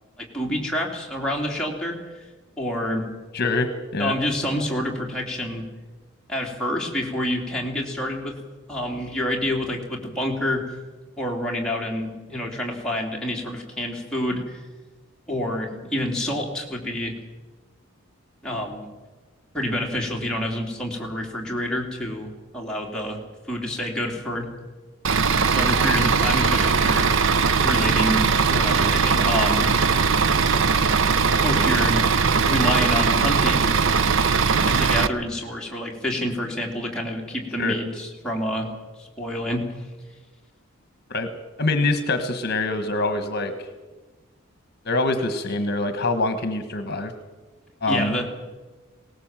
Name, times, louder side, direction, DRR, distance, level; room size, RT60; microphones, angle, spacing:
voice 1, 0.2-2.0 2.6-3.0 4.0-5.6 6.3-8.4 8.7-10.6 11.2-14.6 15.3-17.1 18.4-18.9 19.5-23.2 23.5-24.5 25.5-27.1 27.6-28.2 28.5-29.7 31.4-32.0 32.5-33.7 34.7-38.7 39.0-39.6 47.9-48.3, left 1 dB, 5° left, -2 dB, 3.2 m, -27 dB
voice 2, 3.3-4.1 37.6-37.7 41.1-41.3 41.6-43.5 44.8-47.1 47.8-48.2, left 2 dB, 50° left, 9 dB, 1.4 m, -24 dB
Bus / Idling, 25.0-35.1, right 5 dB, 65° right, 0.7 m, -20 dB
20.0 x 18.5 x 7.5 m, 1.3 s
head